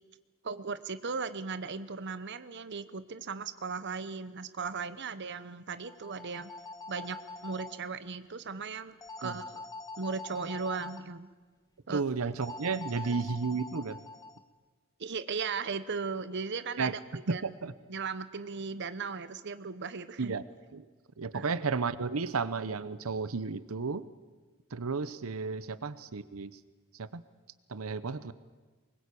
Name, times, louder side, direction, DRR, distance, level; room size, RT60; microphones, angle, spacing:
voice 1, 0.4-6.5 6.9-7.2 7.4-9.6 10.0-11.3 11.9-12.0 12.7-13.2 15.0-17.0 17.3-17.5 17.9-20.3 21.3-21.5, right 5 dB, 55° right, 13 dB, 0.9 m, -37 dB
sound 1, 5.8-7.8 9.0-11.0 12.4-14.4, left 3 dB, 20° left, 1.2 m, -44 dB
voice 2, 11.9-14.0 16.8-16.9 17.3-17.7 20.2-20.4 20.7-20.9 21.2-24.0 24.7-26.5 26.9-27.2 27.7-28.3, right 4 dB, 90° right, 14 dB, 0.8 m, -33 dB
24.0 x 21.5 x 8.5 m, 1.4 s
head